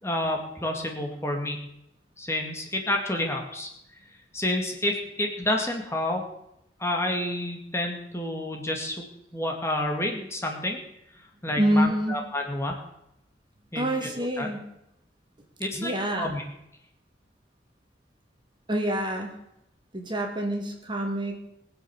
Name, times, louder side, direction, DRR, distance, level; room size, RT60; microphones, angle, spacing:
voice 1, 0.0-1.6 2.2-3.7 4.3-6.2 6.8-9.1 9.3-10.8 11.4-12.8 13.7-14.5 15.6-15.9 16.2-16.4, left 1 dB, 15° left, 2 dB, 2.2 m, -29 dB
voice 2, 11.6-12.2 13.7-14.6 15.7-16.4 18.7-19.4 19.9-21.4, equal, 25° right, 2 dB, 2.4 m, -27 dB
21.5 x 7.8 x 7.2 m, 0.82 s
head